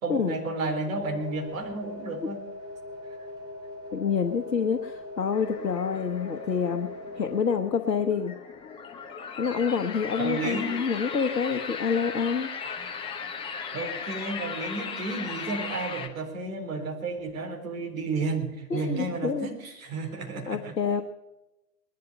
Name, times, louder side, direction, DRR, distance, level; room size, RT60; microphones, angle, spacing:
voice 1, 0.0-2.4 10.2-10.8 13.7-20.8, right 3 dB, 50° right, 3 dB, 4.0 m, -32 dB
sound 1, 1.0-7.6, left 2 dB, 10° right, 3.0 m, -41 dB
voice 2, 3.9-6.9 7.2-8.3 9.4-12.5 18.7-19.5 20.5-21.0, left 6 dB, 75° left, 5 dB, 1.3 m, -27 dB
sound 2, 5.3-16.1, left 6 dB, 10° left, 1.0 m, -37 dB
20.0 x 11.5 x 5.4 m, 0.97 s
figure-of-eight pair, 115°, 50 cm